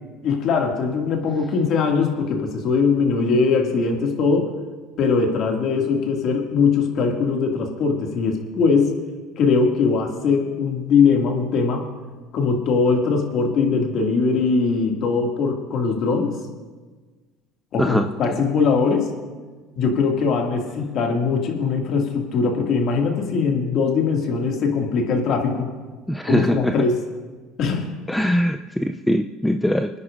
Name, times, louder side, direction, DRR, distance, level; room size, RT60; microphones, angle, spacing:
voice 1, 0.2-4.5 5.0-8.9 9.4-11.8 12.3-16.4 17.7-19.1 19.8-25.7 26.3-27.0 27.6-27.9, left 5 dB, 55° left, 2 dB, 2.1 m, -21 dB
voice 2, 26.1-26.7 28.1-29.9, equal, 5° left, 6 dB, 0.4 m, -21 dB
27.5 x 9.6 x 2.5 m, 1.4 s
supercardioid pair, 90°, 0 cm